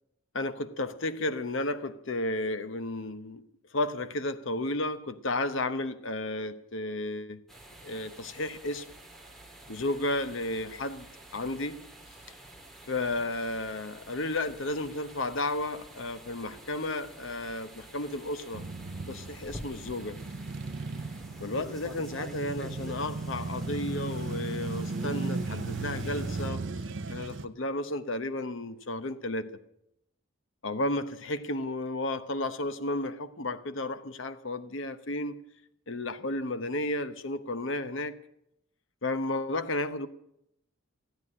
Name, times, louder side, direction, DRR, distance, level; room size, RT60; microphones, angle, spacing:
voice 1, 0.3-3.5 3.7-7.4 7.8-8.9 9.7-11.1 11.3-11.8 12.9-18.7 19.1-20.2 21.4-26.6 27.1-29.6 30.6-35.4 35.9-38.2 39.0-40.1, left 2 dB, 60° left, 0.9 m, -33 dB
sound 1, 7.5-26.5, right 1 dB, ahead, 2.0 m, -48 dB
Male speech man speaking / Motorcycle / Idling, 18.5-27.5, right 3 dB, 55° right, 0.7 m, -36 dB
16.0 x 9.3 x 9.8 m
head